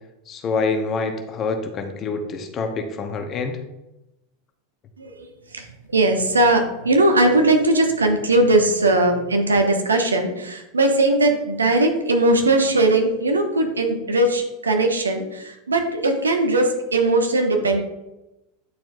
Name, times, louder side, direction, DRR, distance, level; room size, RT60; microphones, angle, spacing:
voice 1, 0.3-3.6, left 4 dB, 30° left, 5 dB, 0.9 m, -26 dB
voice 2, 5.0-5.6 5.9-17.8, right 2 dB, 80° right, 4 dB, 1.0 m, -19 dB
9.4 x 4.3 x 2.6 m, 0.96 s
figure-of-eight pair, 85°, 0 cm